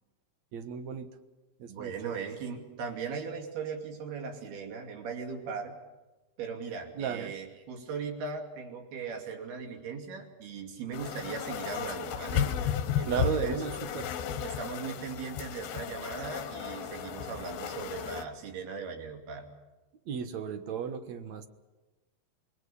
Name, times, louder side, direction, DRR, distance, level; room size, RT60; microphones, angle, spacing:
voice 1, 0.5-1.2 1.6-2.1 6.9-7.4 13.1-14.1 20.1-21.5, right 7 dB, 60° right, 9 dB, 2.2 m, -34 dB
voice 2, 1.7-5.7 6.4-12.5 13.0-13.6 14.4-19.5, right 5 dB, 90° right, 4 dB, 4.7 m, -38 dB
sound 1, 10.9-18.3, left 8 dB, 80° left, 3.2 m, -34 dB
27.0 x 21.0 x 7.1 m, 1.1 s
omnidirectional pair, 4.3 m